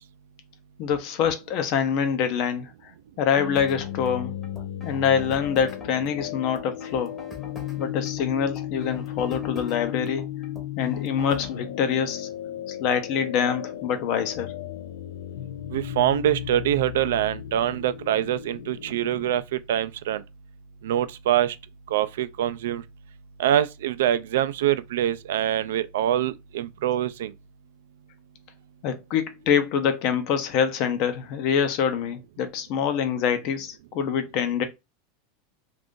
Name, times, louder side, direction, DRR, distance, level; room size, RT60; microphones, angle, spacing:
voice 1, 0.8-2.7 3.2-4.3 4.8-7.2 7.8-10.3 10.8-12.3 12.7-14.5 28.8-34.6, left 7 dB, 50° left, 0.6 m, -25 dB
sound 1, 3.3-19.4, left 12 dB, 90° left, 0.3 m, -35 dB
sound 2, 3.5-11.6, left 2 dB, 15° left, 0.9 m, -44 dB
voice 2, 15.7-20.2 20.8-21.6 21.9-22.8 23.4-27.3, right 11 dB, 85° right, 0.3 m, -24 dB
2.5 x 2.5 x 3.6 m
supercardioid pair, 145°, 0 cm